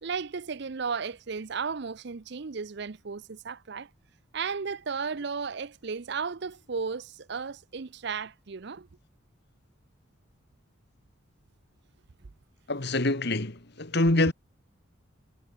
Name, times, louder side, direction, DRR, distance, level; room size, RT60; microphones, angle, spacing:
voice 1, 0.0-3.9 4.3-8.9, right 5 dB, 55° right, 0.6 m, -34 dB
voice 2, 12.7-14.3, left 2 dB, 55° left, 2.0 m, -25 dB
head